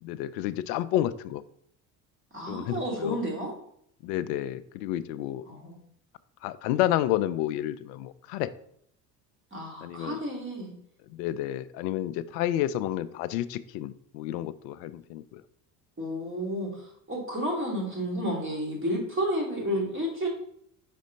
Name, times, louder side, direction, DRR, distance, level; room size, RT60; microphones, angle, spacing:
voice 1, 0.0-1.4 2.5-3.2 4.0-5.4 6.4-8.5 9.8-10.2 11.1-15.4, left 13 dB, 75° left, 14 dB, 0.6 m, -30 dB
voice 2, 2.3-3.5 5.5-5.8 9.5-10.7 16.0-20.3, equal, 25° right, -2 dB, 2.7 m, -31 dB
5.2 x 4.2 x 5.2 m, 0.69 s
hypercardioid pair, 60°, 49 cm